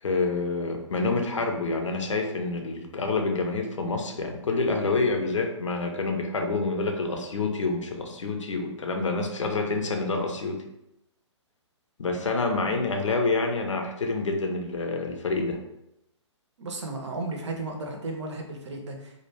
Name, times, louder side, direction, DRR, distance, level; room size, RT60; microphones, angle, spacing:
voice 1, 0.0-10.6 12.0-15.6, left 3 dB, 75° left, 4 dB, 0.5 m, -27 dB
voice 2, 16.6-19.1, right 2 dB, 65° right, 3 dB, 0.6 m, -34 dB
2.2 x 2.1 x 3.3 m, 0.85 s
figure-of-eight pair, 130°, 16 cm